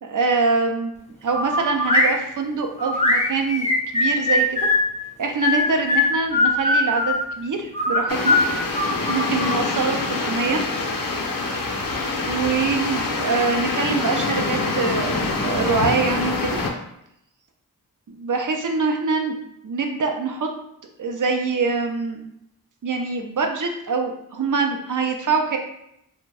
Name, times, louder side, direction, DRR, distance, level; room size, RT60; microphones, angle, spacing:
voice 1, 0.0-0.9 1.2-4.7 5.2-8.4 9.1-10.7 12.2-16.6 18.1-19.4 19.6-20.5 21.0-22.3 22.8-25.6, right 4 dB, 55° right, 3 dB, 0.5 m, -24 dB
sound 1, 1.3-2.1 2.8-4.9 5.4-7.2 7.7-9.6, left 2 dB, 20° left, 0.5 m, -20 dB
sound 2, 8.1-16.7, left 3 dB, 60° left, 0.6 m, -25 dB
2.5 x 2.1 x 3.3 m, 0.78 s
cardioid pair, 40°, 37 cm